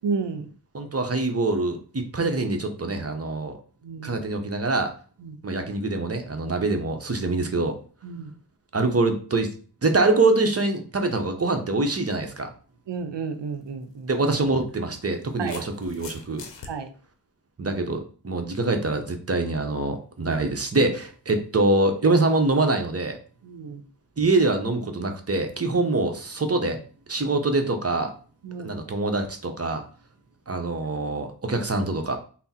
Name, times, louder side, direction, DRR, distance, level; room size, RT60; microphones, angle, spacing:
voice 1, 0.0-0.5 3.8-4.2 5.2-5.4 8.0-8.3 12.9-14.1 15.4-15.7 16.6-16.9 23.4-23.8 28.4-28.7, right 5 dB, 75° right, 8 dB, 0.7 m, -31 dB
voice 2, 0.7-3.6 4.0-4.9 5.4-7.8 8.7-9.5 9.8-12.5 14.1-16.4 17.6-23.2 24.2-26.8 27.1-28.1 28.6-29.8 30.5-32.2, right 2 dB, 35° right, 5 dB, 0.8 m, -24 dB
sound 1, 13.5-13.7 14.8-16.7, left 5 dB, 85° left, 0.7 m, -42 dB
3.4 x 2.1 x 4.2 m, 0.41 s
cardioid pair, 45°, 43 cm